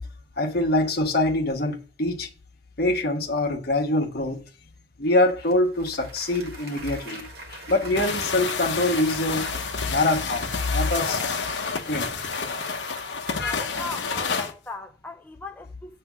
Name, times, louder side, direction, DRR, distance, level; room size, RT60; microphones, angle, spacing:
voice 1, 0.4-2.3 2.8-4.4 5.0-7.2 7.5-9.6 9.9-11.2 11.9-12.1 13.4-13.6, left 2 dB, 60° left, 1.3 m, -24 dB
Applause, 5.4-14.3, right 2 dB, 60° right, 1.6 m, -42 dB
sound 1, 8.0-14.5, left 5 dB, 85° left, 0.9 m, -29 dB
voice 2, 13.4-16.0, left 3 dB, 10° left, 0.4 m, -39 dB
7.7 x 3.4 x 6.0 m
head